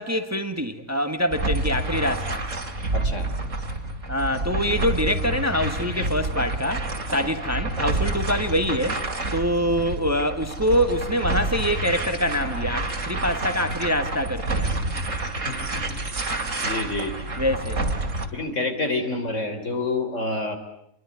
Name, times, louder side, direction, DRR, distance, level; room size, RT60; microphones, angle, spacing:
voice 1, 0.0-2.4 4.1-9.0 9.3-14.7 17.4-17.8, equal, 10° right, 1.6 m, -25 dB
sound 1, 1.3-18.3, right 2 dB, 70° right, 3.0 m, -28 dB
voice 2, 2.9-3.3 7.2-7.3 15.3-16.0 16.4-17.1 18.3-20.6, left 2 dB, 65° left, 4.0 m, -28 dB
27.5 x 23.0 x 9.4 m
omnidirectional pair, 1.4 m